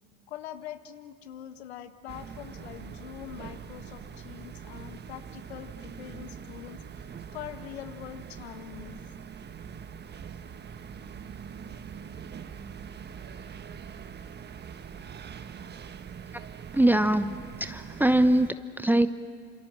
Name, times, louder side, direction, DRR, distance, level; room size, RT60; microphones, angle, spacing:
voice 1, 0.3-7.0 7.3-9.0, left 11 dB, 75° left, 10 dB, 1.5 m, -43 dB
sound 1, 2.1-18.5, right 7 dB, 30° right, 1.4 m, -43 dB
voice 2, 16.7-19.1, right 1 dB, 5° right, 11 dB, 1.0 m, -23 dB
28.5 x 27.0 x 7.6 m, 2.2 s
hypercardioid pair, 70°, 32 cm